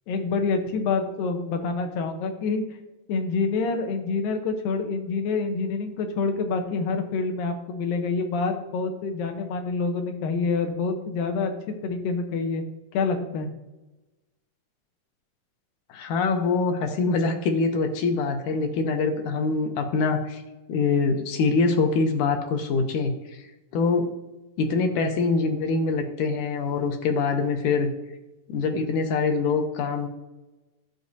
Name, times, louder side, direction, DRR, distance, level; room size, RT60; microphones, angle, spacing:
voice 1, 0.1-2.6 3.1-11.5 11.8-12.6 12.9-13.5, left 4 dB, 90° left, 5 dB, 2.7 m, -27 dB
voice 2, 15.9-20.4 20.7-23.4 23.7-24.1 24.6-27.9 28.5-30.1, left 4 dB, 75° left, 5 dB, 2.2 m, -24 dB
11.5 x 7.3 x 2.7 m, 1.1 s
omnidirectional pair, 3.9 m